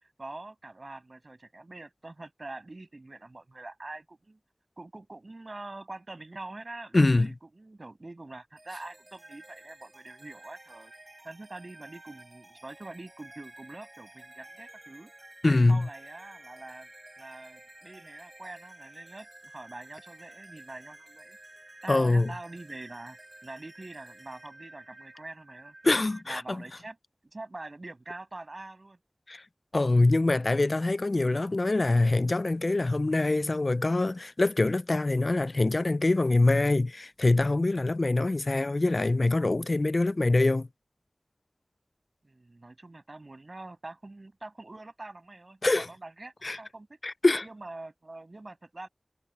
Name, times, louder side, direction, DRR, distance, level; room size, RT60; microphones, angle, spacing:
voice 1, 0.2-4.4 4.8-10.9 11.2-15.1 15.4-16.9 17.2-21.4 21.8-25.7 26.3-27.0 27.3-29.0 42.2-47.0 47.4-48.9, right 2 dB, 60° right, 7.3 m, -44 dB
voice 2, 6.9-7.3 15.4-15.9 21.9-22.3 25.8-26.6 29.3-29.4 29.7-40.7 45.6-45.9 46.4-46.6 47.0-47.4, left 2 dB, 65° left, 0.3 m, -24 dB
sound 1, 8.6-26.2, right 1 dB, 45° right, 7.1 m, -52 dB
wide cardioid pair, 45°, 0 cm